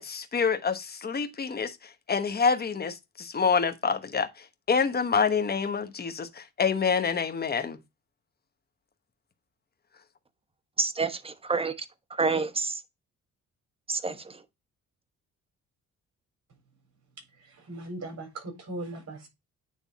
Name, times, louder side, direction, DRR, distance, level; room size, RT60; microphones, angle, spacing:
voice 1, 0.0-1.8 2.1-4.3 4.7-7.8, left 5 dB, 30° left, 1.1 m, -27 dB
voice 2, 10.8-11.7 12.2-12.8 13.9-14.3, right 4 dB, 20° right, 0.9 m, -28 dB
voice 3, 17.4-19.3, right 2 dB, 60° right, 4.0 m, -39 dB
9.3 x 3.5 x 4.1 m
cardioid pair, 90°, 30 cm